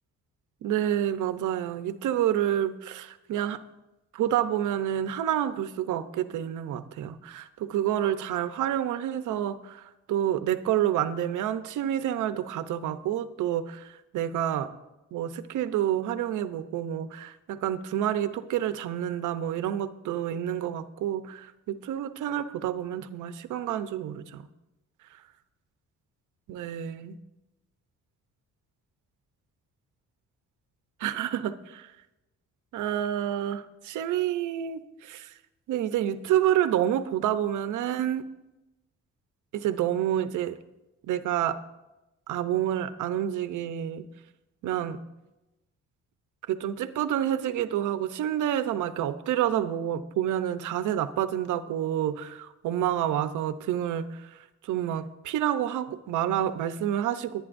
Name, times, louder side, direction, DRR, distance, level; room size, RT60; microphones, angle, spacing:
voice 1, 0.6-3.6 4.1-14.7 15.1-24.4 26.5-27.2 31.0-31.9 32.7-35.3 35.7-38.2 39.5-40.6 41.1-41.6 42.3-44.1 44.6-45.0 46.5-57.5, right 11 dB, 80° right, 12 dB, 0.8 m, -28 dB
24.0 x 9.5 x 2.6 m, 0.99 s
cardioid pair, 90°, 30 cm